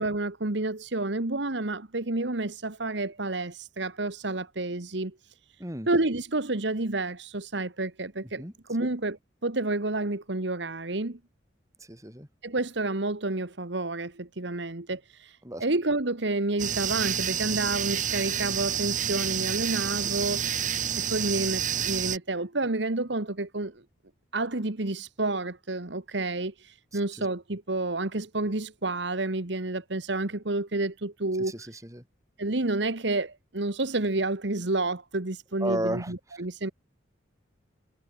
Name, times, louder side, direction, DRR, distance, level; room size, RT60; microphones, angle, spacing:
voice 1, 0.0-5.1 5.8-8.4 8.7-11.2 12.4-20.4 21.0-23.8 24.3-31.7 32.4-36.7, right 2 dB, 70° right, 1.6 m, -30 dB
voice 2, 11.9-12.3 15.4-15.6 20.0-20.2 26.9-27.3 31.5-32.0 35.6-36.1, right 1 dB, 15° right, 4.7 m, -34 dB
sound 1, 16.6-22.2, right 9 dB, 40° right, 7.3 m, -29 dB
head